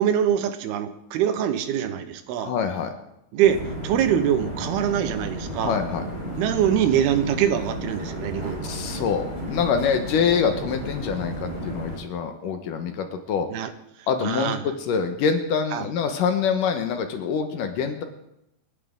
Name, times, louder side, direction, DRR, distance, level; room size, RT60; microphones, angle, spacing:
voice 1, 0.0-2.6 3.3-5.8 6.4-8.8 13.5-13.7 14.2-14.6 15.7-15.9, right 9 dB, 85° right, 10 dB, 3.0 m, -24 dB
voice 2, 2.4-2.9 5.6-6.0 8.6-13.5 14.1-18.0, left 6 dB, 70° left, 6 dB, 2.5 m, -25 dB
sound 1, 3.4-12.0, equal, 15° left, 5.6 m, -33 dB
28.5 x 10.0 x 3.7 m, 0.84 s
omnidirectional pair, 4.4 m